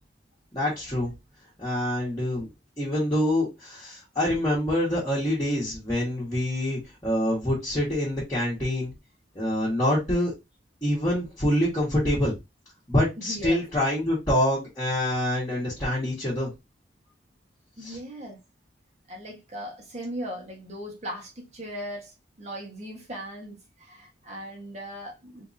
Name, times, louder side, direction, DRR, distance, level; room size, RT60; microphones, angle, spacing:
voice 1, 0.5-1.1 1.6-2.5 2.8-8.9 9.3-10.3 10.8-12.3 12.9-16.5 17.8-18.0, left 1 dB, 20° left, 1.5 m, -26 dB
voice 2, 13.2-13.6 17.8-18.4 19.1-25.5, equal, 35° right, 1.2 m, -38 dB
3.7 x 2.9 x 2.6 m
head